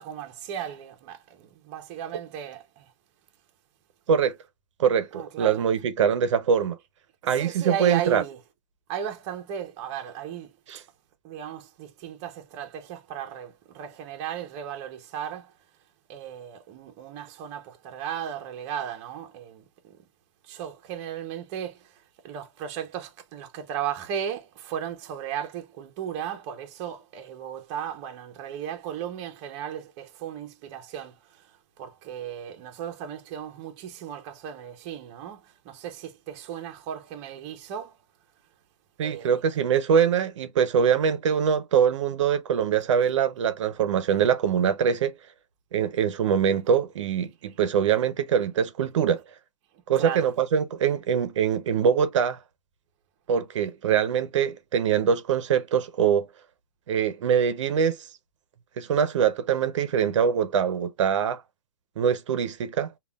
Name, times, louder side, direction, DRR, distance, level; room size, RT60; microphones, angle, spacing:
voice 1, 0.0-2.9 5.1-5.6 7.3-8.4 8.9-10.5 11.2-15.5 16.1-20.0 20.5-22.0 22.2-31.4 31.8-38.0 39.0-39.4 49.9-50.3, right 9 dB, 30° right, 0.7 m, -35 dB
voice 2, 4.8-6.8 7.2-8.2 10.7-10.8 39.0-45.1 45.7-49.2 49.9-52.4 53.3-56.3 56.9-58.1 58.8-61.4 62.0-62.9, right 7 dB, 65° right, 0.7 m, -23 dB
5.3 x 2.3 x 2.3 m
hypercardioid pair, 160°, 17 cm